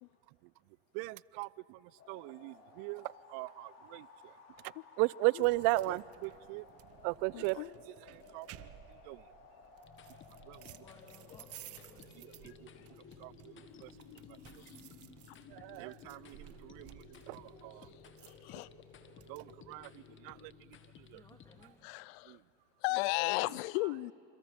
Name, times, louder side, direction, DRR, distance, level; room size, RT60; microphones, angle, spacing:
voice 1, 0.9-1.8 2.1-4.1 5.0-6.6 7.0-7.6 8.3-8.5 9.1-9.2 10.5-10.6 12.2-12.3 13.2-13.5 13.8-13.9 15.5-17.0 17.3-17.9 19.3-19.9 20.2-20.5 21.1-21.2 22.3-22.4, right 23 dB, 70° right, 0.5 m, -36 dB
sound 1, 2.0-20.5, left 4 dB, 55° left, 4.7 m, -58 dB
voice 2, 5.3-6.0 7.3-7.8 12.5-12.6 14.6-14.8 18.2-18.7 21.8-22.4 22.8-24.1, left 22 dB, 75° left, 0.5 m, -36 dB
sound 2, 5.4-19.5, right 14 dB, 50° right, 0.9 m, -57 dB
sound 3, 9.8-21.7, left 8 dB, 40° left, 1.7 m, -59 dB
voice 3, 10.5-12.4 21.1-21.8, left 1 dB, 10° left, 3.1 m, -62 dB
27.5 x 27.0 x 5.2 m
supercardioid pair, 95°, 31 cm